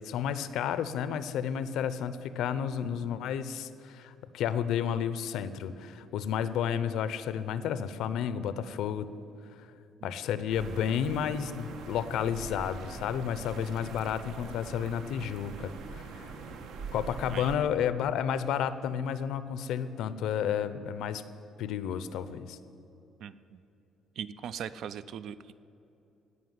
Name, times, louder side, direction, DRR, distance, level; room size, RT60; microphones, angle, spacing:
voice 1, 0.0-9.1 10.0-16.3 16.9-21.2 21.6-22.6, left 8 dB, 70° left, 14 dB, 0.6 m, -31 dB
sound 1, 10.5-17.6, right 4 dB, 75° right, 1.2 m, -43 dB
voice 2, 23.2-23.6 24.2-25.4, right 8 dB, 55° right, 15 dB, 0.4 m, -39 dB
16.5 x 5.9 x 9.6 m, 2.9 s
cardioid pair, 165°, 0 cm